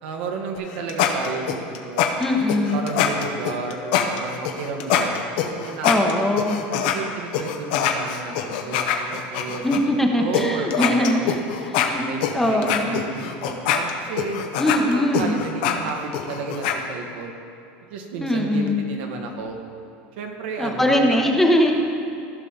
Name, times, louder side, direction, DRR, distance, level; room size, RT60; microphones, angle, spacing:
voice 1, 0.0-2.1 2.7-5.2 5.5-6.3 6.7-11.3 11.9-12.2 12.4-14.4 14.9-17.4 17.9-19.6 20.2-21.2, right 4 dB, 80° right, 2 dB, 1.3 m, -32 dB
sound 1, 0.5-7.0 7.3-9.8 10.3-10.4 10.7-16.8, left 9 dB, 70° left, 0.9 m, -24 dB
voice 2, 2.2-2.9 5.8-6.6 9.6-11.3 11.7-12.0 12.3-13.0 14.6-15.4 18.2-18.8 20.6-21.7, left 1 dB, 5° left, 2 dB, 0.8 m, -21 dB
14.5 x 5.7 x 3.9 m, 2.7 s
supercardioid pair, 140°, 6 cm